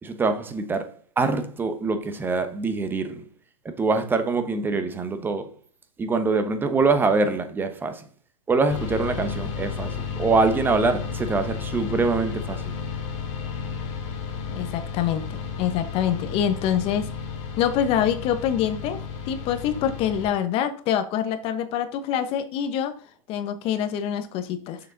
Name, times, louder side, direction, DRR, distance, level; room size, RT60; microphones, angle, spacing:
voice 1, 0.0-3.2 3.6-5.6 6.0-8.0 8.5-12.7, right 3 dB, 10° right, 0.9 m, -24 dB
sound 1, 8.7-20.3, left 6 dB, 55° left, 2.9 m, -33 dB
voice 2, 14.5-17.1 17.6-19.0 19.3-22.9 23.3-24.8, left 9 dB, 35° left, 1.0 m, -25 dB
6.8 x 6.2 x 3.9 m
hypercardioid pair, 135°, 17 cm